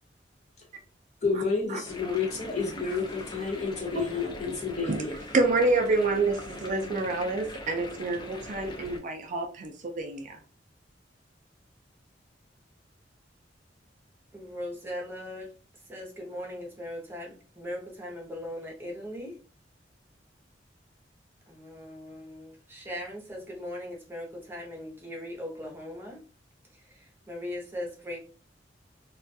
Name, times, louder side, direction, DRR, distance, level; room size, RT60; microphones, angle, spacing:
voice 1, 1.2-5.2, left 4 dB, 40° left, 0.9 m, -30 dB
sound 1, 1.8-9.0, left 1 dB, 25° left, 0.4 m, -42 dB
voice 2, 5.3-10.4, right 3 dB, 45° right, 0.4 m, -27 dB
voice 3, 14.3-15.5 15.9-19.4 21.5-26.2 26.7-28.2, left 1 dB, 15° right, 0.7 m, -39 dB
2.3 x 2.2 x 2.6 m
head